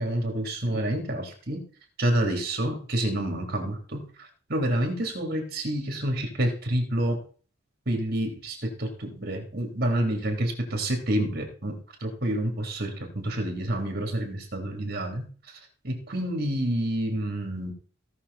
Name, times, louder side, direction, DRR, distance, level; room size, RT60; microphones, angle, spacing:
voice 1, 0.0-1.7 2.0-7.2 7.8-15.6 15.8-17.7, right 1 dB, 50° right, 3 dB, 3.4 m, -28 dB
17.5 x 6.5 x 4.2 m, 0.40 s
head